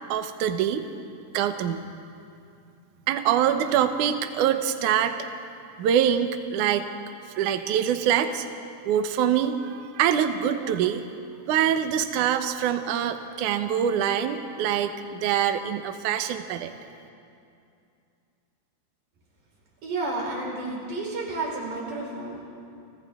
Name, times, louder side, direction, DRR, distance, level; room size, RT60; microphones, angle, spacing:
voice 1, 0.1-0.8 1.3-1.8 3.1-5.1 5.8-6.8 7.4-8.4 8.8-11.0 11.5-16.7, right 9 dB, 85° right, 7 dB, 1.7 m, -24 dB
voice 2, 19.8-22.4, right 2 dB, 45° right, -3 dB, 6.3 m, -31 dB
30.0 x 29.5 x 3.7 m, 2.5 s
omnidirectional pair, 5.0 m